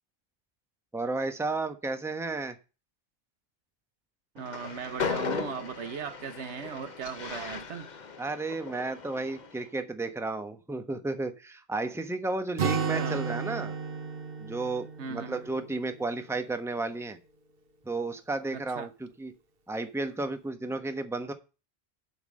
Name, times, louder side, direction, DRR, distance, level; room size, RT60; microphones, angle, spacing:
voice 1, 0.9-2.6 8.2-13.7 14.4-17.2 17.8-19.3 19.7-21.3, right 3 dB, 5° right, 1.0 m, -33 dB
voice 2, 4.3-7.9 12.6-13.2 15.0-15.4 18.5-18.9, right 6 dB, 75° right, 1.2 m, -38 dB
Train, 4.4-9.6, left 5 dB, 45° left, 0.9 m, -37 dB
Acoustic guitar, 12.6-16.3, right 6 dB, 55° right, 1.2 m, -33 dB
8.1 x 5.6 x 6.4 m
omnidirectional pair, 1.2 m